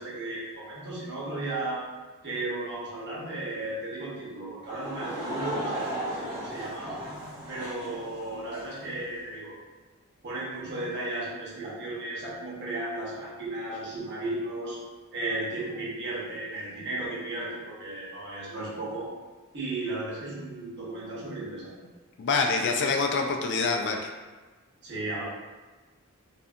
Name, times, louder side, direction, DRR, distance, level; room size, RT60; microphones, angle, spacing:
voice 1, 0.0-1.8 2.2-7.0 7.5-9.6 10.2-14.8 15.1-19.1 19.5-21.9 24.8-25.2, right 2 dB, 50° right, -6 dB, 0.9 m, -35 dB
Laughter / Crowd, 4.6-8.8, right 1 dB, 20° right, 0.7 m, -35 dB
voice 2, 22.2-24.0, left 4 dB, 50° left, 3 dB, 0.3 m, -25 dB
2.6 x 2.5 x 2.4 m, 1.3 s
head